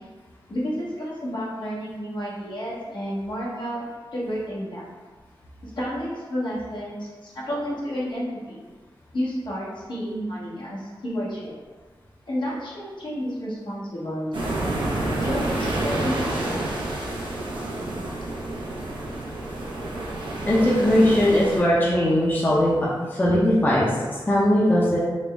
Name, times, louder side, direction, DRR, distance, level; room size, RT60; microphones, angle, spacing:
voice 1, 0.5-3.9 4.1-4.9 5.6-8.6 9.1-11.5 12.3-14.5 15.2-16.6 17.8-18.0, equal, 65° left, -7 dB, 1.2 m, -31 dB
sound 1, 14.3-21.6, right 1 dB, 70° right, 0.8 m, -29 dB
voice 2, 20.5-22.7 23.0-25.0, left 1 dB, 20° left, -7 dB, 0.7 m, -20 dB
4.3 x 2.1 x 3.5 m, 1.4 s
wide cardioid pair, 85°, 9 cm